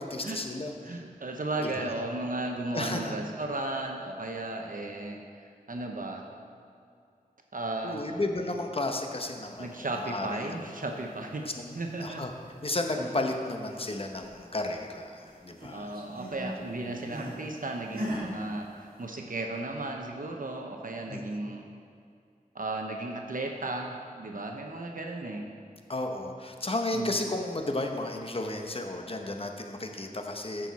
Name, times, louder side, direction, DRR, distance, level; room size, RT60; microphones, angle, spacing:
voice 1, 0.0-1.0 1.6-1.9 2.7-3.1 7.8-10.6 11.4-12.3 12.6-15.9 16.8-16.9 21.1-21.3 25.9-30.7, left 2 dB, 40° left, 3 dB, 0.9 m, -33 dB
voice 2, 0.8-6.3 7.5-8.0 9.6-12.2 15.7-21.7 22.5-25.5 26.9-27.3, right 2 dB, 65° right, 2 dB, 0.8 m, -35 dB
sound 1, 12.7-13.2 13.6-15.0 15.3-17.4 17.9-18.3, equal, 85° right, 1.8 m, -40 dB
14.5 x 6.2 x 4.2 m, 2.4 s
wide cardioid pair, 65°, 15 cm